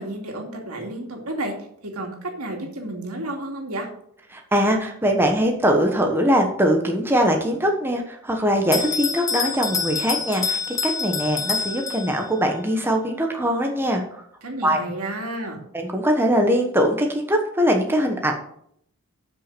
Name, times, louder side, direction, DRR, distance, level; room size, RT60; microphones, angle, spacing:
voice 1, 0.0-1.5 1.8-3.9 14.4-15.6, right 1 dB, 90° right, 1 dB, 2.5 m, -31 dB
voice 2, 4.3-14.0 14.6-14.8 15.7-18.3, equal, 10° right, 2 dB, 1.2 m, -21 dB
Bell, 8.7-12.4, left 5 dB, 15° left, 0.5 m, -27 dB
8.3 x 6.1 x 6.7 m, 0.68 s
head